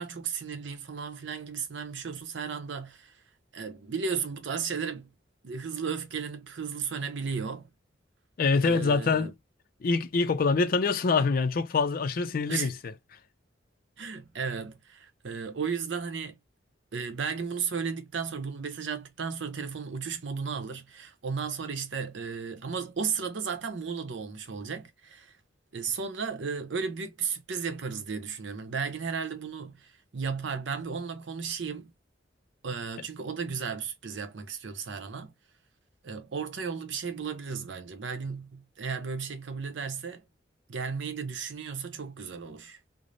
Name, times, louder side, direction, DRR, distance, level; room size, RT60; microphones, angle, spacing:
voice 1, 0.0-3.2 3.5-5.1 5.4-7.7 8.6-9.3 12.5-12.7 14.0-16.4 16.9-25.3 25.7-31.9 32.6-35.3 36.0-40.2 40.7-42.8, right 5 dB, 85° right, 0.7 m, -34 dB
voice 2, 8.4-9.3 9.8-12.9, left 4 dB, 50° left, 0.4 m, -25 dB
3.2 x 2.0 x 2.5 m
head